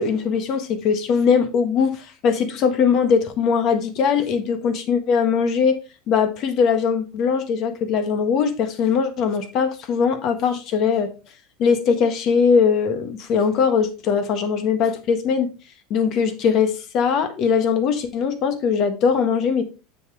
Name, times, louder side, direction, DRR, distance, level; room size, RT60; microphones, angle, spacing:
voice 1, 0.0-5.8 6.1-11.1 11.6-15.5 15.9-19.6, left 6 dB, 50° left, 1.4 m, -20 dB
7.3 x 6.9 x 3.3 m
supercardioid pair, 115°, 0 cm